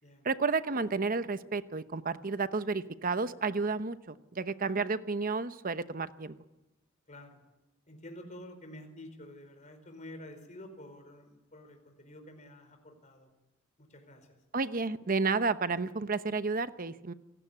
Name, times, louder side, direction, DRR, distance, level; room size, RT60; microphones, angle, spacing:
voice 1, 0.2-6.3 14.5-17.1, right 4 dB, 45° right, 12 dB, 0.9 m, -31 dB
voice 2, 7.1-7.4 7.9-13.3 13.8-14.3, left 1 dB, 35° left, 6 dB, 4.6 m, -49 dB
26.5 x 18.0 x 8.4 m, 1.0 s
head